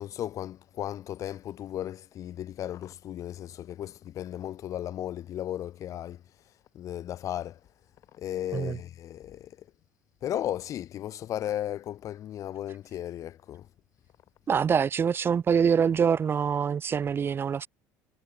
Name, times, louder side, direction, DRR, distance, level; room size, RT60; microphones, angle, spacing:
voice 1, 0.0-6.2 6.7-7.6 8.1-9.6 10.2-13.7, left 11 dB, 50° left, 1.6 m, -35 dB
voice 2, 14.5-17.7, right 7 dB, 35° right, 0.8 m, -25 dB
supercardioid pair, 80°, 7 cm